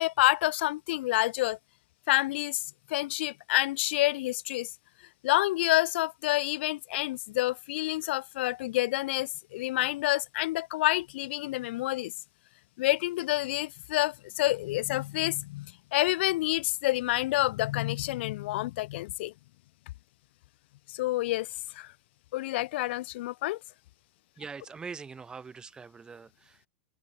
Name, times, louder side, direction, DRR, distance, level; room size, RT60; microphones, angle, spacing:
voice 1, 0.0-1.6 2.1-4.7 5.2-12.1 12.8-19.3 20.9-21.5 21.7-21.9 22.3-23.6, left 17 dB, 60° left, 0.4 m, -28 dB
voice 2, 24.4-26.7, right 5 dB, 10° right, 2.1 m, -43 dB
open air
supercardioid pair, 160°, 7 cm